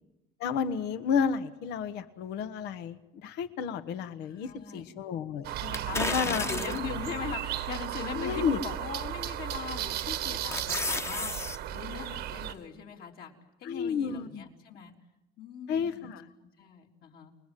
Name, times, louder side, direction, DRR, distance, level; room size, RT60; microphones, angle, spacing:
voice 1, 0.4-5.5 5.9-6.4 8.1-8.6 13.6-14.4 15.7-16.2, left 7 dB, 90° left, 11 dB, 1.4 m, -31 dB
voice 2, 4.2-4.9 5.6-11.3 11.7-13.3 13.6-14.9 15.4-16.1 16.4-17.3, left 7 dB, 65° left, 1 dB, 4.0 m, -40 dB
sound 1, 5.4-12.5, right 12 dB, 80° right, 1.6 m, -35 dB
sound 2, 5.7-7.0 7.6-7.7 9.3-9.6 10.0-11.6 11.9-12.0, left 2 dB, 15° left, 1.1 m, -33 dB
29.0 x 21.0 x 9.2 m, 0.96 s
cardioid pair, 110°, 17 cm